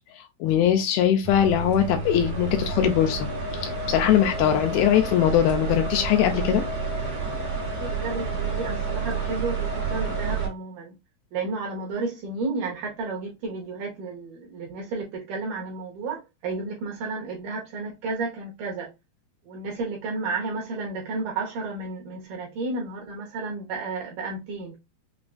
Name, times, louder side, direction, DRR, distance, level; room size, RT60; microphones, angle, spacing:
voice 1, 0.4-3.3 3.6-6.6, left 10 dB, 80° left, 2.3 m, -21 dB
sound 1, 1.2-10.5, right 4 dB, 45° right, 1.2 m, -30 dB
voice 2, 7.9-10.9 11.3-18.9 19.5-24.8, right 3 dB, 70° right, 2.1 m, -32 dB
6.0 x 2.2 x 2.4 m
omnidirectional pair, 4.6 m